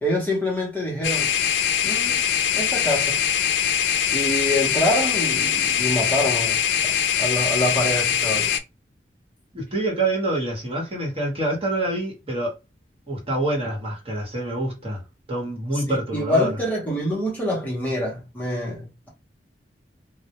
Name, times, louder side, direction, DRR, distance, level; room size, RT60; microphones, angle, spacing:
voice 1, 0.0-1.4 1.8-2.2 2.5-3.2 4.1-8.5 15.7-19.1, left 1 dB, 10° left, 0.7 m, -26 dB
sound 1, 1.0-8.6, left 9 dB, 90° left, 0.3 m, -22 dB
voice 2, 9.5-12.5 13.1-15.0 15.3-16.6, right 1 dB, 35° right, 1.0 m, -26 dB
2.1 x 2.0 x 2.8 m
head